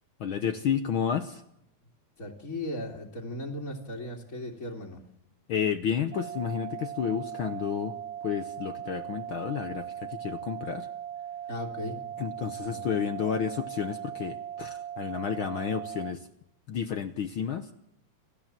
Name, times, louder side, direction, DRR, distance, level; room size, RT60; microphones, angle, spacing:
voice 1, 0.2-1.4 5.5-8.0 8.2-10.9 12.2-16.3 16.7-17.7, left 8 dB, 70° left, 8 dB, 1.2 m, -31 dB
voice 2, 2.2-5.0 11.5-12.0 12.7-12.9, left 1 dB, 30° left, 1 dB, 2.6 m, -37 dB
sound 1, 6.1-16.1, right 10 dB, 60° right, 2.6 m, -39 dB
29.0 x 13.5 x 7.5 m, 0.80 s
omnidirectional pair, 3.4 m